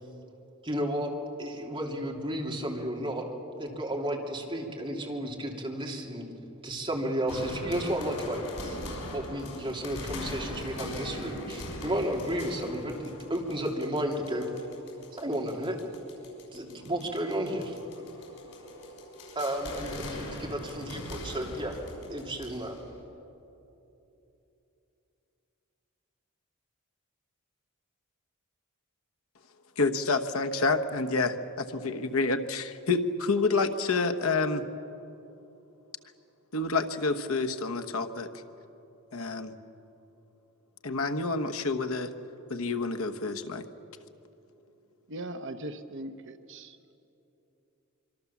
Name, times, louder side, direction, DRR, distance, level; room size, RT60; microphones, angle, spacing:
voice 1, 0.6-1.1 1.4-3.2 3.6-6.2 6.6-8.8 9.1-12.9 13.3-14.5 15.1-15.8 16.5-17.8 19.3-21.8 22.1-22.7, right 1 dB, 25° right, -1 dB, 3.0 m, -32 dB
sound 1, 7.3-23.0, left 1 dB, 85° left, 6.1 m, -41 dB
voice 2, 29.8-34.6 36.5-38.3 39.1-39.5 40.8-42.1 42.5-43.6, left 3 dB, 65° left, 8 dB, 1.2 m, -28 dB
voice 3, 45.1-46.8, right 1 dB, 55° right, 8 dB, 0.9 m, -39 dB
25.0 x 24.5 x 7.2 m, 3.0 s
head